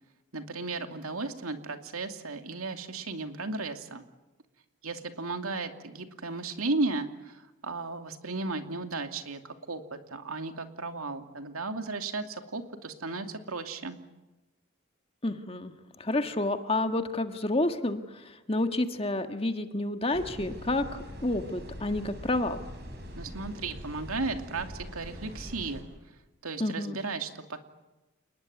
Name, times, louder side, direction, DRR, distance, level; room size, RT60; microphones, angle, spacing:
voice 1, 0.3-4.0 4.8-14.0 23.2-25.8 26.4-27.6, right 3 dB, 85° right, 6 dB, 2.6 m, -35 dB
voice 2, 15.2-15.7 16.0-22.6 26.6-27.0, left 2 dB, 25° left, 7 dB, 1.6 m, -29 dB
sound 1, 20.1-25.8, equal, 50° right, 6.6 m, -43 dB
29.5 x 20.0 x 9.7 m, 1.1 s
head